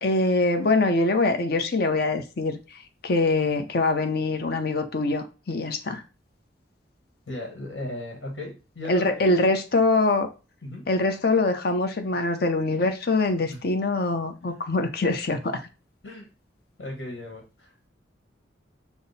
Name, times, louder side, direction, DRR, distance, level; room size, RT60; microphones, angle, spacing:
voice 1, 0.0-6.0 8.9-10.3 10.9-15.6, left 2 dB, 55° left, 0.7 m, -24 dB
voice 2, 7.3-9.5 10.6-10.9 13.5-13.6 16.0-16.3 16.8-17.7, left 1 dB, 75° left, 1.3 m, -36 dB
5.9 x 2.0 x 4.0 m
head